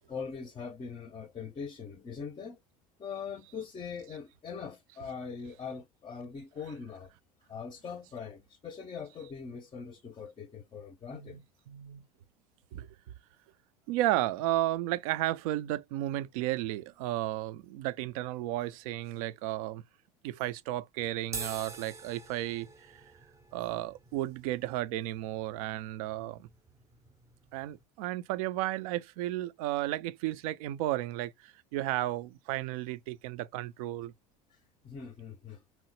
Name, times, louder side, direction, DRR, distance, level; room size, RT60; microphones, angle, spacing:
voice 1, 0.1-2.6 3.0-7.1 7.4-11.4 34.5-35.6, left 6 dB, 25° left, 0.5 m, -42 dB
voice 2, 11.7-12.0 12.7-12.9 13.9-19.8 20.2-23.0 23.5-26.5 27.5-34.1, right 15 dB, 65° right, 0.4 m, -33 dB
sound 1, 21.2-27.8, right 4 dB, 15° right, 0.6 m, -47 dB
2.9 x 2.1 x 3.0 m
hypercardioid pair, 70°, 20 cm